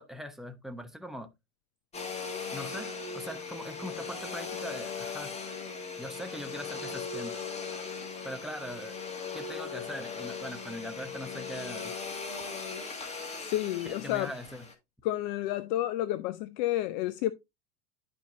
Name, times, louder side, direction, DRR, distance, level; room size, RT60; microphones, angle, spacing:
voice 1, 0.0-1.3 2.5-5.3 6.0-7.4 8.2-9.0 9.3-11.9 13.8-14.7, equal, ahead, 0.9 m, -41 dB
Domestic sounds home sounds, 1.9-14.7, left 5 dB, 15° left, 1.8 m, -38 dB
voice 2, 13.4-14.3 15.0-17.3, left 14 dB, 40° left, 0.4 m, -30 dB
11.5 x 4.3 x 2.6 m
figure-of-eight pair, 85°, 37 cm